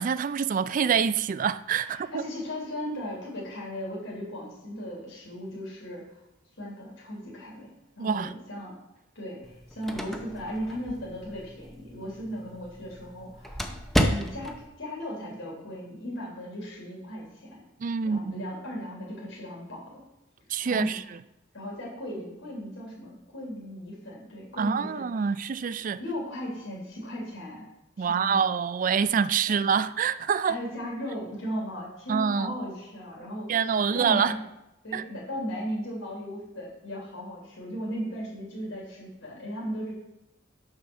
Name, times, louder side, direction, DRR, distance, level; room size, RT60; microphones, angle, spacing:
voice 1, 0.0-2.2 8.0-8.3 17.8-18.5 20.5-21.2 24.6-26.0 28.0-30.6 32.1-32.6 33.5-34.4 34.9-35.0, right 6 dB, 45° right, 0.3 m, -26 dB
voice 2, 1.8-6.0 6.6-7.7 7.9-8.7 9.1-13.6 14.0-17.6 18.0-20.0 20.6-20.9 21.5-25.0 26.0-27.7 28.0-28.4 29.5-29.6 30.4-33.6 33.9-34.4 34.8-39.9, equal, 85° left, 3.4 m, -36 dB
sound 1, 9.4-14.7, equal, ahead, 0.7 m, -32 dB
6.9 x 5.7 x 6.6 m
head